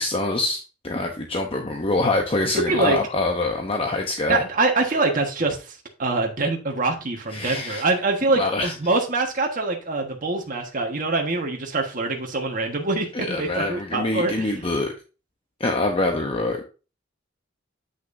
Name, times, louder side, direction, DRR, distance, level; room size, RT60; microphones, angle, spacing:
voice 1, 0.0-4.4 7.3-7.8 8.4-8.7 13.1-14.9 15.6-16.7, left 2 dB, 30° left, 3 dB, 0.8 m, -25 dB
voice 2, 2.5-3.0 4.3-14.5, right 3 dB, 45° right, 2 dB, 1.4 m, -24 dB
8.4 x 6.2 x 2.6 m, 0.32 s
head